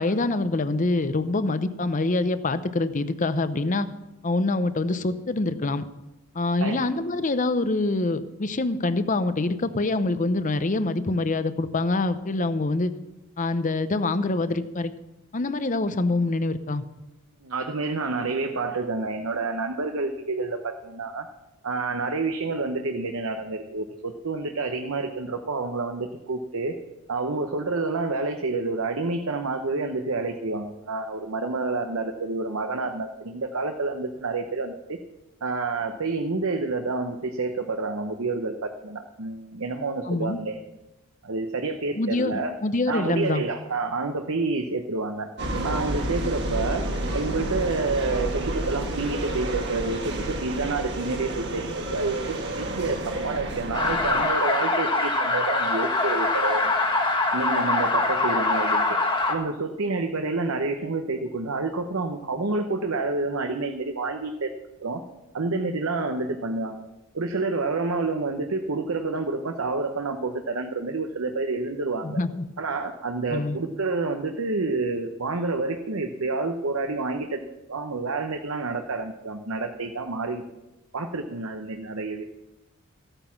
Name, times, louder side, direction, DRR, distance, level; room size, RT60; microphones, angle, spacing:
voice 1, 0.0-3.9 4.2-5.8 6.3-12.9 13.4-14.9 15.3-16.8 40.0-40.4 42.0-43.4 72.0-72.5 73.3-73.6, left 2 dB, 35° left, 12 dB, 0.7 m, -25 dB
voice 2, 17.4-21.3 21.6-26.7 27.1-35.0 35.4-40.6 41.2-42.5 42.9-45.3 45.6-46.9 47.1-52.2 52.6-56.7 57.3-58.9 59.3-64.5 64.8-65.0 65.3-66.8 67.1-72.2 72.6-77.4 77.7-80.4 80.9-82.3, right 3 dB, 75° right, 5 dB, 0.9 m, -28 dB
sound 1, 45.4-54.2, right 1 dB, 55° right, 1.7 m, -30 dB
sound 2, 53.7-59.3, left 2 dB, 20° left, 1.5 m, -23 dB
14.5 x 9.0 x 5.9 m, 0.97 s
head